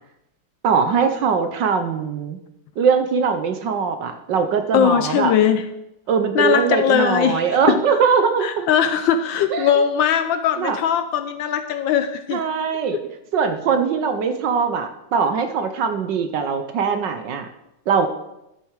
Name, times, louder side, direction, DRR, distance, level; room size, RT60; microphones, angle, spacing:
voice 1, 0.6-2.4 2.8-5.3 6.1-8.7 9.5-9.8 10.6-10.8 12.3-13.0 13.3-17.5 17.9-18.1, right 6 dB, 65° right, 7 dB, 1.3 m, -21 dB
voice 2, 4.7-5.7 6.3-7.4 8.4-12.4 12.9-13.0, left 8 dB, 75° left, 10 dB, 1.2 m, -20 dB
12.5 x 6.9 x 4.7 m, 0.86 s
omnidirectional pair, 2.4 m